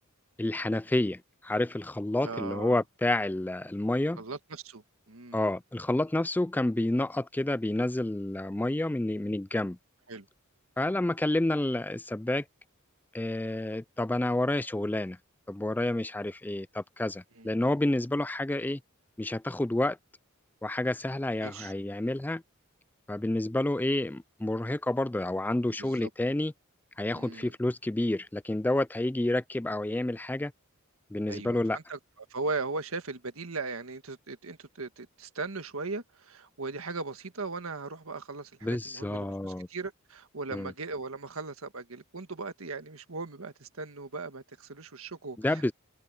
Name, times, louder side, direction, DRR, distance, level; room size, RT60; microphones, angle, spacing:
voice 1, 0.4-4.2 5.3-9.8 10.8-12.4 13.1-15.2 15.5-18.8 19.2-20.0 20.6-22.4 23.1-26.5 27.0-30.5 31.1-31.8 38.6-39.7 40.5-40.7 45.4-45.7, left 1 dB, 10° left, 0.4 m, -29 dB
voice 2, 2.2-2.8 4.2-5.5 10.1-10.3 17.4-17.5 21.4-21.7 25.8-26.1 27.1-27.5 31.3-45.7, right 3 dB, 85° right, 1.6 m, -38 dB
head